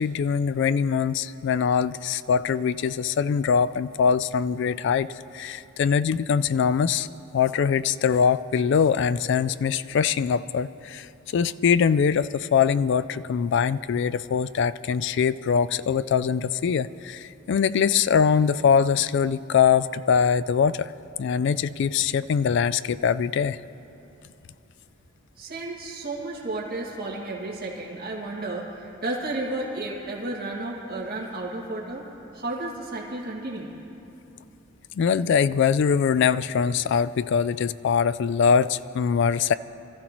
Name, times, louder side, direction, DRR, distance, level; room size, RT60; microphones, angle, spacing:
voice 1, 0.0-5.1 5.3-7.1 7.3-20.9 21.2-23.6 34.9-39.5, left 6 dB, 55° left, 16 dB, 0.3 m, -23 dB
voice 2, 25.4-32.1 32.3-33.7, right 2 dB, 45° right, -3 dB, 2.1 m, -32 dB
23.5 x 14.0 x 3.0 m, 2.9 s
head